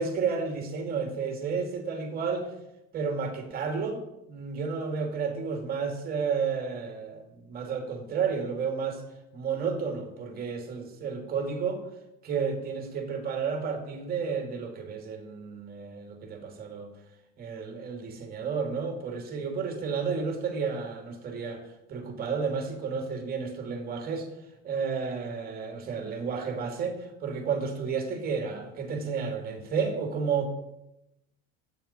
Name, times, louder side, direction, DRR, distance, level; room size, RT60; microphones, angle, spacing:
voice 1, 0.0-2.5 2.9-9.0 9.3-11.8 12.2-16.9 17.4-21.6 21.9-24.3 24.6-30.5, right 5 dB, 30° right, 4 dB, 2.6 m, -31 dB
24.0 x 9.1 x 4.4 m, 0.89 s
cardioid pair, 160°, 29 cm